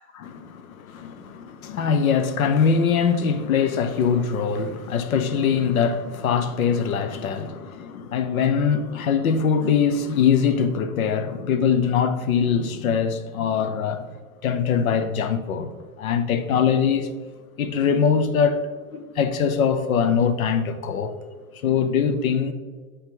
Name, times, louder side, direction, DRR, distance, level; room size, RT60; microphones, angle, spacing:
voice 1, 0.1-14.1 14.4-17.1 17.6-18.6 18.9-21.2 21.6-22.5, left 6 dB, 85° left, 0.8 m, -22 dB
8.9 x 3.2 x 3.7 m
hypercardioid pair, 140°, 41 cm